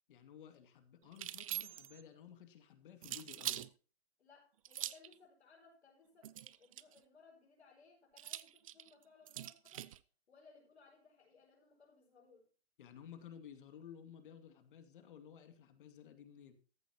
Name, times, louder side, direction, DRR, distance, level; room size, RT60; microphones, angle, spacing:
voice 1, 0.1-3.7 12.8-16.6, left 8 dB, 55° left, 8 dB, 2.4 m, -55 dB
sound 1, 1.1-2.0 3.0-3.7 4.6-5.1 6.2-7.0 8.2-10.0, right 13 dB, 35° right, 0.5 m, -43 dB
voice 2, 4.2-9.9 10.3-12.5, left 4 dB, 90° left, -5 dB, 5.3 m, -64 dB
14.5 x 11.5 x 2.9 m, 0.38 s
hypercardioid pair, 150°, 32 cm